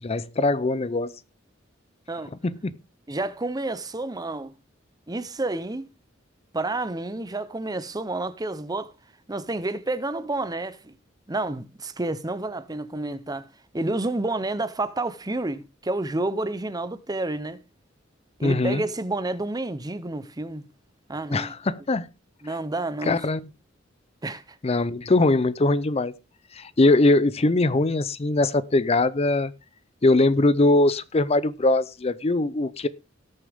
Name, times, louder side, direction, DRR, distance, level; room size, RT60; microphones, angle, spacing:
voice 1, 0.0-1.1 2.4-2.7 18.4-18.8 21.3-22.1 23.0-23.5 24.6-26.1 26.5-29.5 30.0-32.9, left 2 dB, 30° left, 0.6 m, -21 dB
voice 2, 3.1-4.5 5.1-5.9 6.5-8.9 9.3-10.9 11.3-13.5 13.7-17.6 18.4-20.7 21.1-21.5 22.4-23.3 24.2-24.4, right 2 dB, 20° right, 0.8 m, -29 dB
18.5 x 6.9 x 3.5 m
head